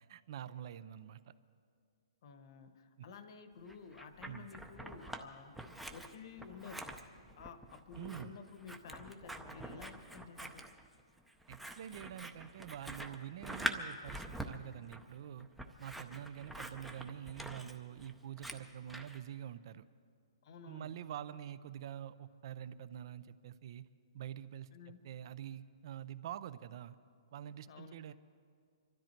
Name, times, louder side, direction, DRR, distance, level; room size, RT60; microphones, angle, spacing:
voice 1, 0.1-1.2 3.0-3.1 4.2-4.5 8.0-8.3 11.5-15.5 15.8-19.8 20.7-23.9 24.1-27.0 27.3-28.1, right 10 dB, 50° right, 15 dB, 0.5 m, -46 dB
voice 2, 2.2-7.0 7.4-10.7 20.4-21.0 24.7-25.1 27.7-28.1, left 5 dB, 55° left, 10 dB, 1.1 m, -52 dB
Scissors, 3.7-5.2 5.5-19.2, right 1 dB, ahead, 0.6 m, -45 dB
25.0 x 13.0 x 4.5 m, 2.3 s
hypercardioid pair, 155°, 3 cm